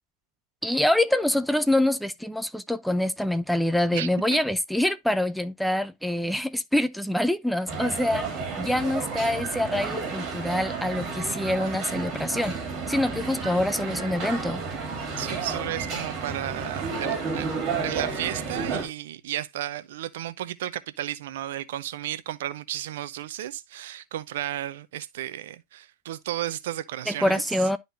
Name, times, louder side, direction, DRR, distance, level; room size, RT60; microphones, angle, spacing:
voice 1, 0.6-12.6 12.9-14.6 27.1-27.8, left 1 dB, ahead, 0.4 m, -25 dB
sound 1, 7.7-18.9, right 4 dB, 35° right, 2.3 m, -31 dB
voice 2, 15.2-27.4, right 12 dB, 55° right, 0.5 m, -33 dB
11.0 x 4.0 x 2.6 m
figure-of-eight pair, 90°, 0 cm